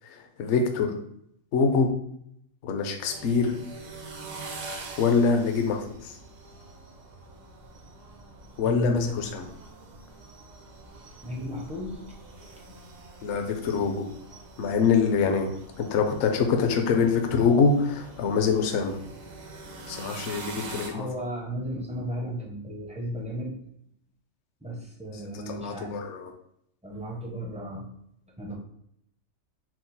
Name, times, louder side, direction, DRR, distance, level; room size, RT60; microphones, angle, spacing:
voice 1, 0.0-0.9 1.5-1.9 2.6-3.6 5.0-6.2 8.6-9.4 13.2-14.0 14.6-15.5 15.8-19.0 19.9-21.1 25.5-26.3, left 5 dB, 65° left, 5 dB, 0.8 m, -24 dB
sound 1, 3.0-20.9, right 3 dB, 75° right, 1.2 m, -44 dB
voice 2, 8.6-9.1 11.2-12.0 20.9-23.6 24.6-26.0 26.8-27.9 28.4-28.6, equal, 10° right, -2 dB, 0.4 m, -34 dB
4.5 x 2.0 x 4.0 m, 0.73 s
omnidirectional pair, 1.4 m